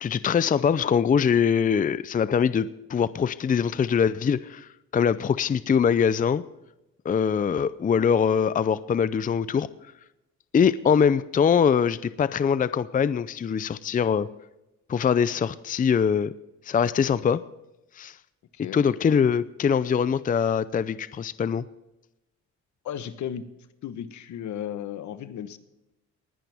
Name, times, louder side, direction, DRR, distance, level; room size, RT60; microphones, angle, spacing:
voice 1, 0.0-6.4 7.0-9.7 10.5-14.3 14.9-16.3 16.7-17.4 18.0-18.1 18.7-21.6, left 7 dB, 30° left, 16 dB, 0.5 m, -23 dB
voice 2, 22.8-23.5 23.8-25.6, left 9 dB, 70° left, 12 dB, 1.1 m, -34 dB
19.5 x 10.5 x 3.5 m, 0.94 s
cardioid pair, 90°, 30 cm